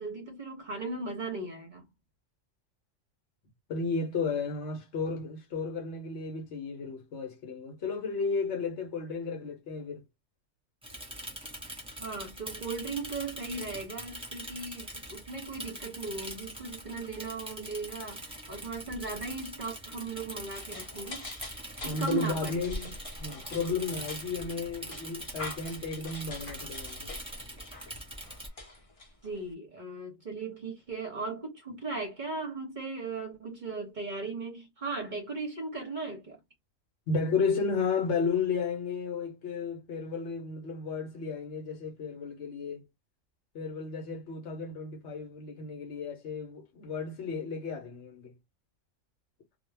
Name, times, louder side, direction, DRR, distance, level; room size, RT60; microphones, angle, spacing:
voice 1, 0.0-1.9 11.9-21.3 21.8-22.9 29.2-36.4, right 3 dB, 45° right, 0.7 m, -37 dB
voice 2, 3.7-10.0 21.8-22.9 23.2-27.1 37.1-42.8 43.5-48.3, left 4 dB, 65° left, 1.0 m, -33 dB
Bicycle / Mechanisms, 10.8-28.5, right 1 dB, 5° right, 0.8 m, -43 dB
sound 1, 20.5-29.5, left 1 dB, 35° left, 0.7 m, -45 dB
2.2 x 2.2 x 3.2 m
omnidirectional pair, 1.3 m